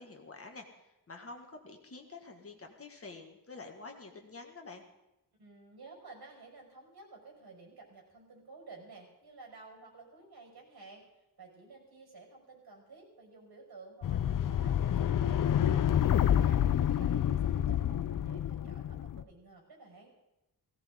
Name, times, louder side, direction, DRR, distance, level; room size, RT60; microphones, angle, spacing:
voice 1, 0.0-4.8, left 3 dB, 40° left, 3 dB, 2.0 m, -48 dB
voice 2, 5.4-11.0 11.4-16.6 16.9-20.1, right 3 dB, 80° right, 0 dB, 5.9 m, -53 dB
sound 1, 14.0-19.2, left 10 dB, 60° left, 0.5 m, -28 dB
18.5 x 17.0 x 3.9 m, 0.92 s
wide cardioid pair, 145°, 37 cm